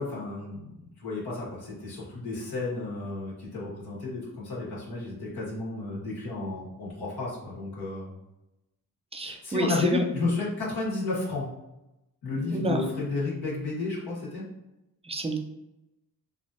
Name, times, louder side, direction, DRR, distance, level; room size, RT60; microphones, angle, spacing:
voice 1, 0.0-8.1 9.2-11.5 12.2-14.4, left 3 dB, 70° left, -6 dB, 1.5 m, -32 dB
voice 2, 9.1-10.0 12.5-12.8 15.1-15.4, right 1 dB, 15° right, 4 dB, 0.5 m, -28 dB
3.3 x 2.5 x 2.6 m, 0.93 s
cardioid pair, 50°, 39 cm